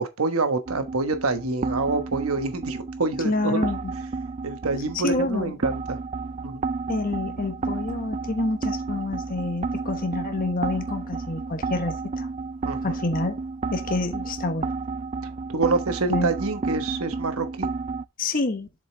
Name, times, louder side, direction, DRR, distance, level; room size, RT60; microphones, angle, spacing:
voice 1, 0.0-3.7 4.4-6.0 6.4-6.6 12.6-12.9 15.5-17.7, right 3 dB, 85° right, 1.2 m, -27 dB
sound 1, 0.7-18.0, right 4 dB, 30° right, 0.4 m, -31 dB
voice 2, 3.2-3.9 4.9-5.6 6.9-12.3 12.8-13.4 13.7-14.7 16.1-16.3 18.2-18.7, left 2 dB, 40° left, 1.1 m, -27 dB
7.4 x 5.2 x 3.2 m
head